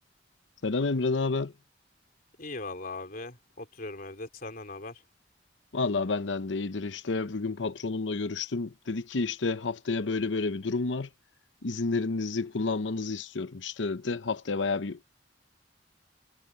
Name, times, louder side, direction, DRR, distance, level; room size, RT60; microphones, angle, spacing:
voice 1, 0.6-1.5 5.7-11.1 11.6-15.1, left 3 dB, 90° left, 0.8 m, -30 dB
voice 2, 2.4-5.0, left 2 dB, 50° left, 3.5 m, -39 dB
head